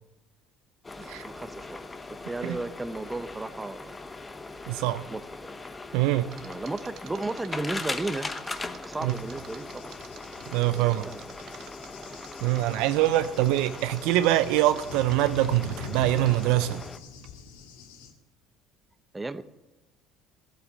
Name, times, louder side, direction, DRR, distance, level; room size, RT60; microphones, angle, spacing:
sound 1, 0.8-17.0, left 3 dB, 20° left, 1.1 m, -40 dB
voice 1, 1.0-3.9 5.1-5.5 6.4-8.4 8.9-9.9 10.7-11.2 19.1-19.4, right 2 dB, 15° right, 0.9 m, -35 dB
voice 2, 4.7-5.0 5.9-6.3 9.0-9.2 10.5-11.1 12.4-16.8, right 15 dB, 75° right, 0.7 m, -24 dB
Mechanisms, 6.3-16.9 17.2-17.3, right 9 dB, 60° right, 1.4 m, -48 dB
Cricket / Thunder, 9.1-18.1, left 5 dB, 85° left, 2.5 m, -44 dB
15.0 x 8.5 x 8.4 m
hypercardioid pair, 70°, 0 cm